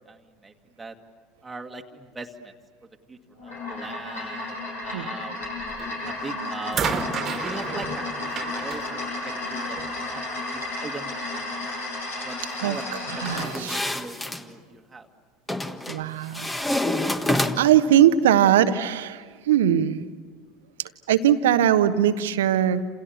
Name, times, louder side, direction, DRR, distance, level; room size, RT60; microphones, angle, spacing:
voice 1, 0.1-1.0 1.4-2.5 3.1-3.2 3.4-5.5 6.0-7.0 7.4-8.8 9.2-11.6 12.2-12.8 13.2-15.1, right 3 dB, 15° right, 2 dB, 1.9 m, -40 dB
sound 1, 3.4-13.5, left 2 dB, 70° left, 7.0 m, -33 dB
sound 2, 5.8-6.1 6.7-10.0 11.0-11.1, right 6 dB, 35° right, 2.0 m, -32 dB
voice 2, 13.2-13.8 15.9-16.5 17.6-20.0 21.1-22.8, right 10 dB, 65° right, 11 dB, 1.1 m, -20 dB
sound 3, 13.3-14.4 15.5-16.0 16.3-17.8, left 1 dB, 10° left, 1.5 m, -27 dB
29.0 x 28.5 x 7.1 m, 1.5 s
figure-of-eight pair, 70°, 0 cm